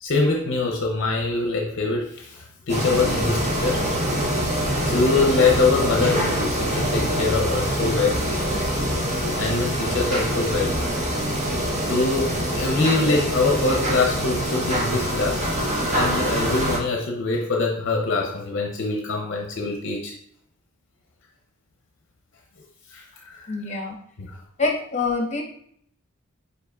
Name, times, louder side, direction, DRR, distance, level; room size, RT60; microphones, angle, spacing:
voice 1, 0.0-3.8 4.9-8.2 9.4-10.8 11.8-15.5 15.9-20.1 22.9-23.6 24.2-24.3, left 3 dB, 60° left, 1 dB, 0.6 m, -24 dB
sound 1, 2.7-16.8, equal, 35° right, 1.0 m, -24 dB
voice 2, 23.5-24.0 24.6-25.4, left 3 dB, 35° left, 2 dB, 0.9 m, -25 dB
5.3 x 4.1 x 2.4 m, 0.67 s
head